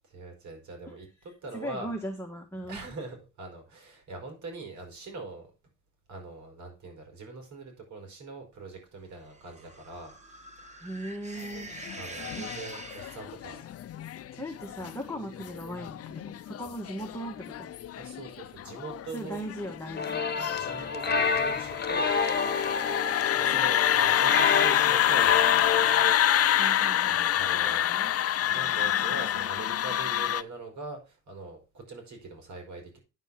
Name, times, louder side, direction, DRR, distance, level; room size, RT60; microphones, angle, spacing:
voice 1, 0.1-1.9 2.7-5.5 6.1-10.9 11.9-13.6 18.0-19.4 20.5-22.2 23.4-25.7 27.1-27.9 28.4-33.0, right 3 dB, 70° right, 4 dB, 4.7 m, -42 dB
voice 2, 1.5-2.8 10.8-11.7 12.4-12.5 14.3-17.7 19.1-20.6 26.5-28.1 28.5-28.9, right 1 dB, 10° left, 1 dB, 1.6 m, -39 dB
sound 1, 9.2-13.5, right 1 dB, 25° right, 1.9 m, -45 dB
sound 2, 11.6-30.4, left 11 dB, 50° left, 0.6 m, -27 dB
sound 3, 20.0-26.1, left 5 dB, 35° left, 1.4 m, -29 dB
9.3 x 4.2 x 7.0 m, 0.30 s
cardioid pair, 90°, 30 cm